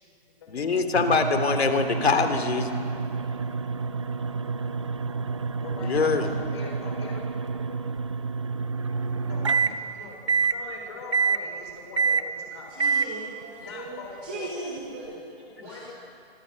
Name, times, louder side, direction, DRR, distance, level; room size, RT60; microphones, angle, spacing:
voice 1, 0.5-2.7 5.8-6.3, left 4 dB, 80° left, 7 dB, 3.1 m, -23 dB
sound 1, 0.9-9.8 10.3-10.6 11.1-11.5 12.0-12.3 12.8-13.1, right 5 dB, 30° right, 0.7 m, -28 dB
voice 2, 1.3-1.6 5.6-8.0 9.2-13.1 13.6-14.5 15.6-15.9, left 4 dB, 25° left, 0 dB, 5.2 m, -43 dB
voice 3, 12.7-15.9, right 2 dB, 10° right, -2 dB, 1.0 m, -38 dB
27.0 x 25.5 x 6.5 m, 2.5 s
hypercardioid pair, 180°, 31 cm